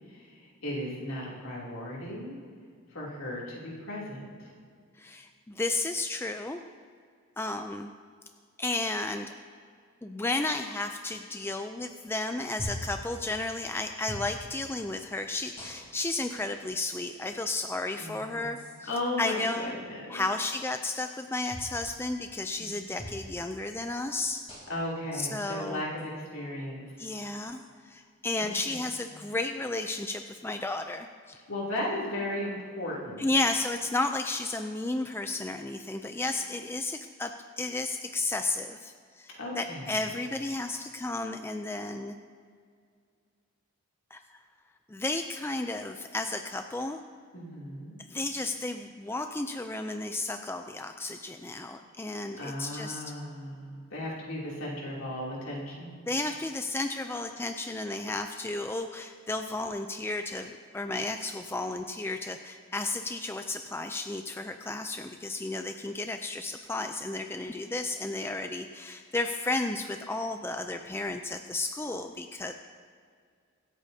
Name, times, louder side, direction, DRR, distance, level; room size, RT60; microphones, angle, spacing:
voice 1, 0.1-2.3 2.9-4.5 18.0-18.4 18.9-20.2 22.6-22.7 24.7-26.8 28.4-28.9 31.5-33.3 39.4-40.0 47.3-47.9 52.4-56.0, left 1 dB, 70° left, -5 dB, 2.9 m, -36 dB
voice 2, 5.0-6.6 7.4-7.9 8.6-9.3 10.0-18.9 19.2-19.7 20.1-24.4 25.1-25.8 27.0-31.4 33.2-42.1 44.1-44.2 44.9-47.0 48.1-53.0 56.1-72.5, left 2 dB, 10° left, 6 dB, 0.3 m, -33 dB
sound 1, 12.6-13.0 14.1-14.3 15.6-16.1 17.1-17.2 18.5-18.7 21.5-21.8 23.0-23.2 24.5-24.9 26.0-26.1 27.5-27.7, equal, 30° left, 3.4 m, -40 dB
25.0 x 8.5 x 2.8 m, 2.1 s
head